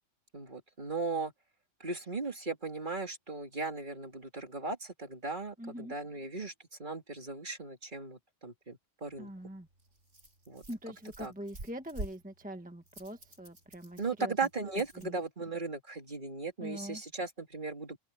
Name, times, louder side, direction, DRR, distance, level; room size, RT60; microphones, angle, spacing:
voice 1, 0.3-1.3 1.8-6.5 6.8-9.3 10.5-10.6 11.2-11.3 14.0-18.0, right 3 dB, 35° right, 2.7 m, -37 dB
voice 2, 5.6-5.9 9.2-9.7 10.7-14.3 15.0-15.1 16.6-17.0, equal, 5° right, 1.3 m, -43 dB
Rattle, 9.1-15.1, right 1 dB, 65° right, 7.1 m, -48 dB
open air
omnidirectional pair, 1.4 m